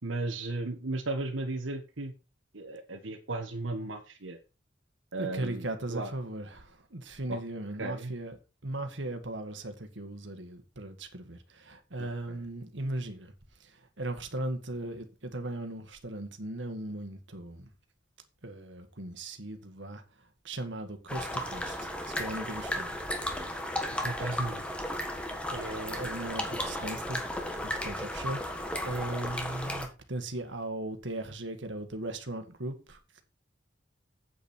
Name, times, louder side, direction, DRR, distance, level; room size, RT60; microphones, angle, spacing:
voice 1, 0.0-2.1 2.5-4.4 5.1-6.1 7.3-7.4 7.8-8.1 12.0-12.4 24.0-24.6, right 2 dB, 90° right, 1.5 m, -35 dB
voice 2, 5.2-8.4 8.6-13.3 14.0-17.6 18.4-20.0 20.4-23.0 25.5-27.2 27.6-33.0, right 1 dB, 70° right, 1.8 m, -38 dB
sound 1, 21.1-29.9, left 1 dB, 5° left, 1.5 m, -34 dB
8.7 x 8.5 x 4.4 m
head